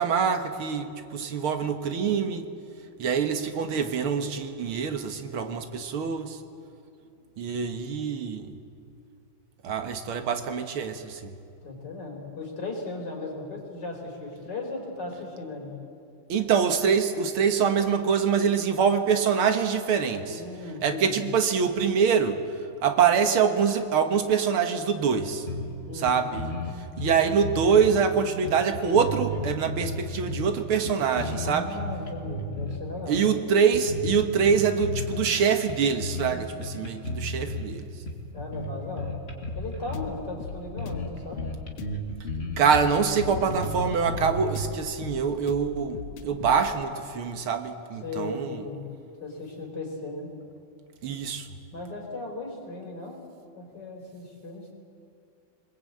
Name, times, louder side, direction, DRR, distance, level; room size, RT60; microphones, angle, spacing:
voice 1, 0.0-2.5 3.0-6.4 7.4-8.5 9.6-11.3 16.3-20.4 20.8-22.4 22.8-25.5 25.9-26.5 27.0-31.7 33.1-37.9 42.6-48.6 51.0-51.5, right 6 dB, 85° right, 7 dB, 2.3 m, -25 dB
voice 2, 11.6-15.7 20.3-21.2 25.9-26.2 31.4-33.2 38.3-39.1 39.5-41.4 48.0-48.9 49.2-50.3 51.7-53.3 53.5-54.7, left 2 dB, 55° left, 0 dB, 4.9 m, -37 dB
sound 1, 25.5-25.8 26.1-26.2 26.4-28.0 28.4-30.5 30.9-32.8 33.1-33.3 33.7-35.4 35.7-36.3 36.6-37.7 38.1-40.1 40.5-40.6 40.8-41.1 41.4-44.7, left 1 dB, 30° left, 2.6 m, -33 dB
sound 2, 39.5-46.7, left 6 dB, 80° left, 2.0 m, -40 dB
25.5 x 21.5 x 8.7 m, 2.5 s
omnidirectional pair, 2.3 m